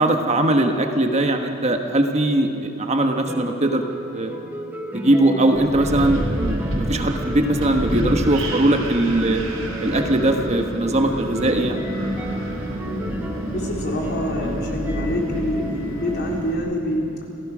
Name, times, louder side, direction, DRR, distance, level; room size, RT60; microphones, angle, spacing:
voice 1, 0.0-3.8 4.1-4.3 4.9-9.4 9.8-11.9 14.4-14.6, right 1 dB, 30° right, 4 dB, 1.2 m, -20 dB
sound 1, 3.3-16.5, right 1 dB, 10° right, 1.2 m, -34 dB
Wind, 5.5-16.5, equal, 75° right, 3.7 m, -29 dB
voice 2, 13.5-17.1, equal, 50° left, -1 dB, 3.6 m, -26 dB
29.0 x 16.0 x 6.1 m, 2.7 s
head